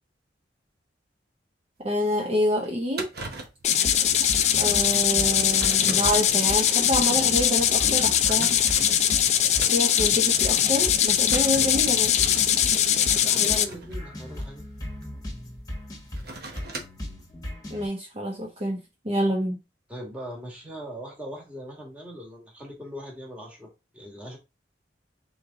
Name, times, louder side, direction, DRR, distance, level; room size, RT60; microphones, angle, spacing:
voice 1, 1.8-3.1 4.6-8.5 9.7-12.1 17.7-19.6, equal, 35° right, 0.7 m, -27 dB
sound 1, 1.8-1.9 2.3-2.4 2.6-2.7 2.9-3.7 4.2-4.3 4.9-5.0 5.4-6.2 7.0-7.1 7.8-10.1 10.5-10.8 11.3-11.6 12.5-15.1 15.9-17.1, right 3 dB, 60° right, 1.0 m, -40 dB
sound 2, 3.6-13.7, left 10 dB, 40° left, 0.4 m, -21 dB
sound 3, 3.8-17.9, left 1 dB, 20° left, 1.2 m, -37 dB
voice 2, 5.9-6.4 13.2-14.6 19.9-23.7 23.9-24.4, equal, 5° right, 1.5 m, -39 dB
3.9 x 3.3 x 3.5 m
head